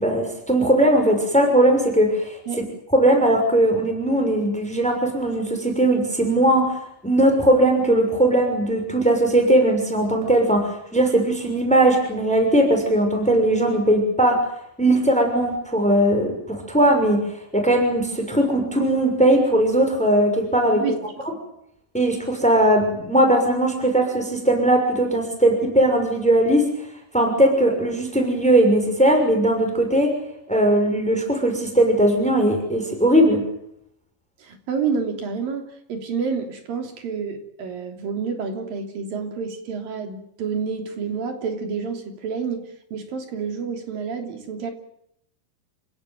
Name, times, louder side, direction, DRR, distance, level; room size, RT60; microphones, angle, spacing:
voice 1, 0.0-2.6 2.9-6.7 7.0-14.4 14.8-17.2 17.5-20.8 21.9-26.7 27.1-30.1 30.5-33.4, right 1 dB, ahead, 4 dB, 6.0 m, -19 dB
voice 2, 20.7-21.3 34.4-35.6 35.9-44.7, right 5 dB, 80° right, 5 dB, 4.9 m, -29 dB
28.5 x 17.0 x 9.4 m, 0.75 s
omnidirectional pair, 3.9 m